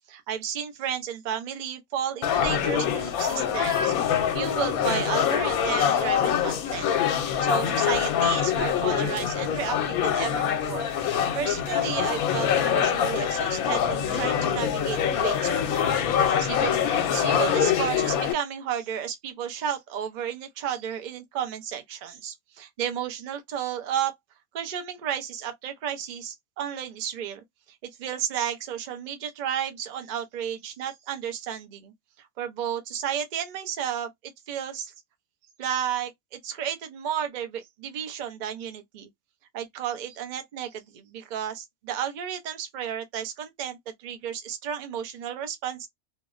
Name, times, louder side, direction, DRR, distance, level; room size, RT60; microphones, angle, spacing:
voice 1, 0.1-3.9 4.3-6.9 7.4-24.1 24.5-27.4 27.8-34.9 35.6-39.1 39.5-45.9, right 9 dB, 55° right, 0.5 m, -32 dB
sound 1, 2.2-18.3, left 8 dB, 80° left, 1.0 m, -25 dB
2.7 x 2.1 x 2.4 m
omnidirectional pair, 1.5 m